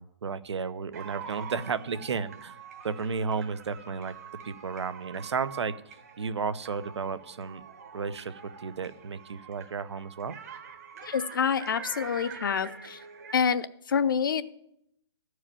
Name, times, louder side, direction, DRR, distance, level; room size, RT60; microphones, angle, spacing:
voice 1, 0.0-2.6 2.8-4.1 4.4-5.8 6.2-7.6 7.9-10.4, right 5 dB, 85° right, 14 dB, 0.8 m, -33 dB
sound 1, 0.9-13.4, right 6 dB, 35° right, 0.9 m, -45 dB
voice 2, 11.0-13.0 13.3-14.4, left 7 dB, 50° left, 15 dB, 0.6 m, -27 dB
13.5 x 4.8 x 8.8 m, 0.78 s
hypercardioid pair, 175°, 14 cm